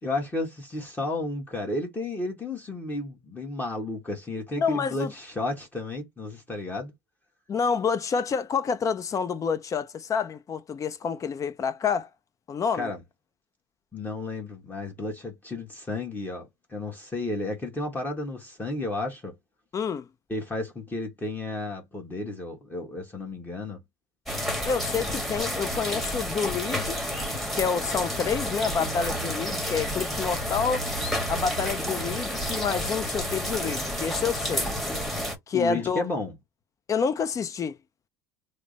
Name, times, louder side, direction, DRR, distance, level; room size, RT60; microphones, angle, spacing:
voice 1, 0.0-6.9 12.8-13.0 13.9-19.3 20.3-23.8 33.4-33.5 35.5-36.3, left 2 dB, 15° left, 1.3 m, -32 dB
voice 2, 4.6-5.1 7.5-12.1 12.5-12.9 19.7-20.1 24.7-27.0 27.5-30.9 31.3-34.7 35.5-36.0 36.9-37.8, left 6 dB, 35° left, 0.6 m, -28 dB
sound 1, 24.3-35.3, equal, ahead, 1.3 m, -30 dB
3.2 x 2.1 x 3.9 m
supercardioid pair, 90°, 10 cm